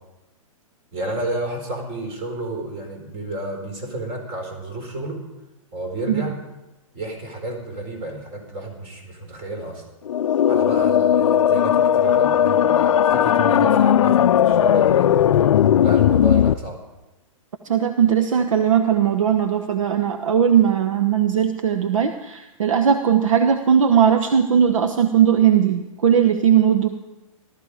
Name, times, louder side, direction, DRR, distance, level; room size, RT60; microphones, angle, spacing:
voice 1, 0.9-5.2 5.7-6.4 6.9-9.8 10.4-15.1 15.8-16.8, right 1 dB, 35° right, 3 dB, 4.6 m, -30 dB
sound 1, 10.1-16.5, left 10 dB, 65° left, 0.5 m, -17 dB
voice 2, 17.6-26.9, right 8 dB, 70° right, 7 dB, 1.0 m, -18 dB
17.0 x 13.0 x 4.9 m, 1.0 s
hypercardioid pair, 115°, 18 cm